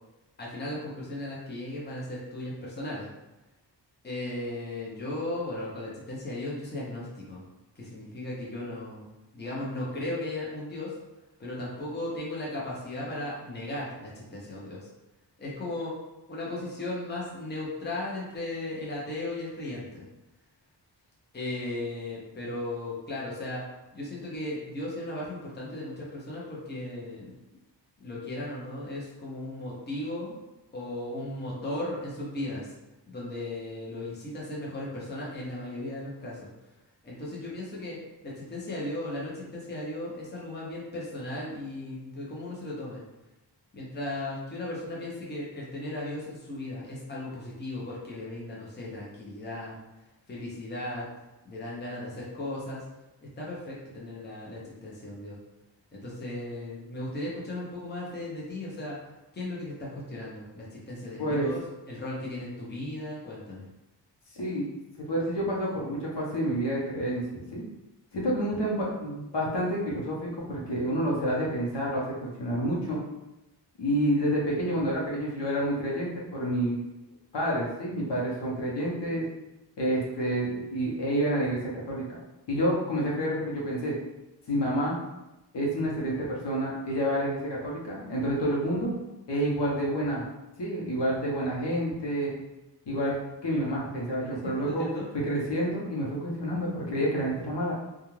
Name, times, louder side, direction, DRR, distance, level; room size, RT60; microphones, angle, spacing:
voice 1, 0.4-3.1 4.0-7.4 7.8-9.1 9.3-10.9 11.4-14.9 15.4-15.9 16.3-20.1 21.3-23.6 23.9-27.3 28.0-30.4 30.7-32.7 33.1-36.5 37.0-38.0 38.2-43.0 43.7-49.8 50.3-51.1 51.4-52.9 53.2-55.4 55.9-59.0 59.3-61.6 61.9-63.7 94.4-95.1, left 1 dB, 25° left, -5 dB, 0.7 m, -36 dB
voice 2, 61.2-61.5 64.3-64.7 65.0-67.6 68.1-73.0 73.8-76.8 77.3-79.3 79.8-82.0 82.5-83.9 84.5-85.0 85.5-88.9 89.3-90.2 90.6-92.3 92.9-93.2 93.4-94.9 95.1-97.7, equal, 70° left, -5 dB, 0.8 m, -29 dB
2.4 x 2.3 x 3.1 m, 0.99 s
wide cardioid pair, 130°, 44 cm